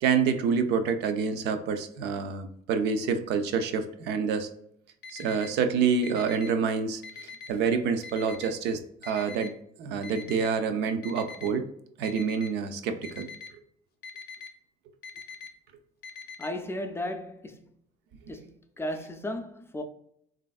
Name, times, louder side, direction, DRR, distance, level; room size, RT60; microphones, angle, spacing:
voice 1, 0.0-4.5 5.1-9.5 9.8-11.6 12.0-13.3, right 6 dB, 80° right, 0.4 m, -27 dB
Alarm, 5.0-5.5 6.0-6.5 7.0-7.5 8.0-8.5 9.0-9.5 10.0-10.5 11.0-11.5 12.0-12.5 13.0-13.5 14.0-14.5 15.0-15.5 16.0-16.5, left 6 dB, 65° left, 0.5 m, -42 dB
voice 2, 16.4-17.7 18.3-19.8, left 1 dB, 15° left, 0.3 m, -35 dB
3.2 x 2.5 x 2.3 m
cardioid pair, 110°, 17 cm